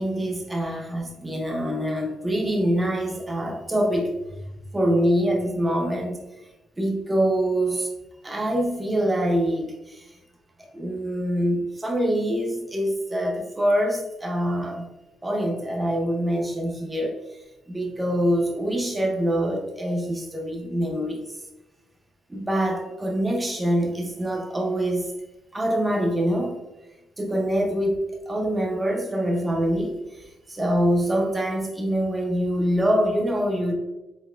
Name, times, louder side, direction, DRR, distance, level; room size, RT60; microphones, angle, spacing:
voice 1, 0.0-4.2 4.7-6.2 6.8-7.9 8.2-9.9 10.7-14.8 15.2-17.2 17.7-21.2 22.3-25.1 25.5-26.6 27.2-28.0 28.3-30.0 30.5-33.7, equal, 15° right, 1 dB, 0.9 m, -24 dB
4.8 x 4.0 x 2.6 m, 1.0 s
cardioid pair, 90°, 0 cm